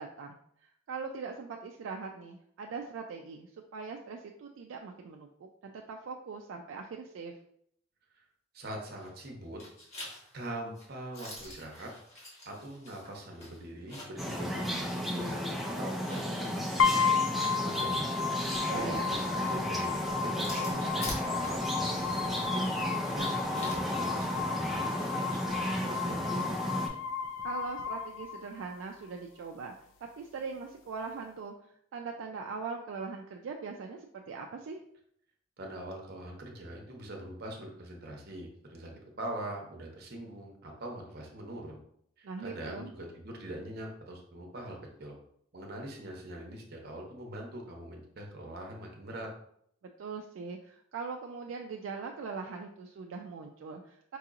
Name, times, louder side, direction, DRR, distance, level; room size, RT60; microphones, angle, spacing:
voice 1, 0.0-7.3 18.7-19.1 27.4-29.7 30.2-31.5 31.9-34.8 42.2-42.9 50.0-54.2, right 4 dB, 75° right, 2 dB, 0.3 m, -41 dB
voice 2, 8.5-9.6 10.3-11.9 12.4-17.0 17.3-22.6 23.1-26.6 35.6-41.8 42.2-45.1 45.5-49.3, right 1 dB, 50° right, 1 dB, 0.8 m, -43 dB
sound 1, 8.9-9.3 9.6-14.3 14.7-14.8 15.8-25.1, left 1 dB, 35° left, 1.2 m, -47 dB
sound 2, 14.2-26.9, equal, ahead, 0.4 m, -33 dB
sound 3, 16.8-28.8, left 6 dB, 70° left, 0.4 m, -33 dB
4.6 x 2.8 x 2.4 m, 0.69 s
head